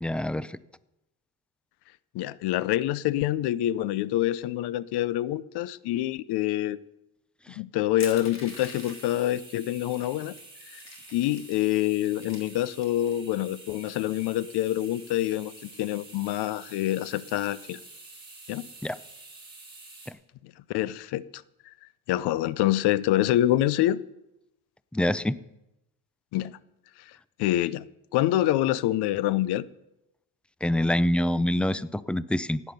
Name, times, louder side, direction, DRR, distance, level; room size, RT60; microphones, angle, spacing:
voice 1, 0.0-0.6 7.5-7.6 18.8-19.0 20.1-20.2 24.9-25.4 30.6-32.6, left 1 dB, 5° left, 0.5 m, -26 dB
voice 2, 2.1-6.8 7.5-10.3 10.7-10.8 11.1-17.8 18.5-18.7 20.4-21.4 22.1-24.0 26.3-26.6 27.1-27.8 28.1-29.6, left 14 dB, 85° left, 0.7 m, -26 dB
Crushing, 8.0-9.2 10.0-10.1 10.4-11.6 12.0-13.1, left 3 dB, 45° left, 3.7 m, -44 dB
sound 1, 8.5-20.1, right 2 dB, 10° right, 5.0 m, -48 dB
16.0 x 9.6 x 6.7 m
cardioid pair, 95°, 39 cm